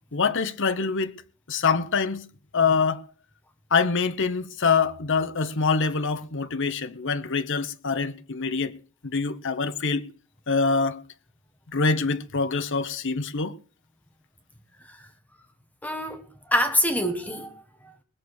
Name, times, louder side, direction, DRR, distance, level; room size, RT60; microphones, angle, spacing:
voice 1, 0.1-1.1 1.5-2.2 2.5-3.0 3.7-8.8 9.0-10.0 10.5-11.0 11.7-13.5, left 4 dB, 55° left, 1.0 m, -25 dB
voice 2, 15.8-18.0, left 1 dB, 5° left, 1.3 m, -27 dB
20.0 x 7.0 x 6.5 m
head